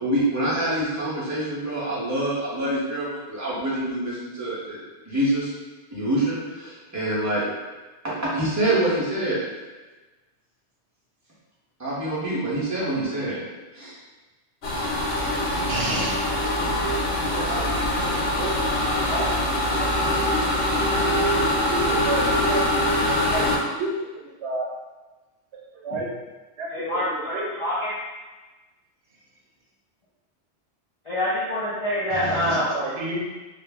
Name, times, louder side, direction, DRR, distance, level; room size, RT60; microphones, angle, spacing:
voice 1, 0.0-5.5 5.9-7.4 8.0-9.4 11.8-13.4 13.7-14.0, right 1 dB, 20° right, -9 dB, 0.7 m, -26 dB
sound 1, 14.6-23.6, left 1 dB, 70° left, 0.8 m, -23 dB
voice 2, 15.5-16.5 17.3-17.6 18.0-18.1 18.4-18.5 19.1-19.3 19.8-19.9 21.0-21.1 21.3-22.6 22.9-23.0 23.3-24.7 25.5-26.1 26.6-27.0 27.3-27.5 32.1-33.2, right 2 dB, 80° right, -3 dB, 1.0 m, -31 dB
voice 3, 26.7-28.0 31.0-32.7, left 1 dB, 45° left, -10 dB, 0.4 m, -26 dB
2.3 x 2.0 x 3.4 m, 1.2 s
omnidirectional pair, 1.2 m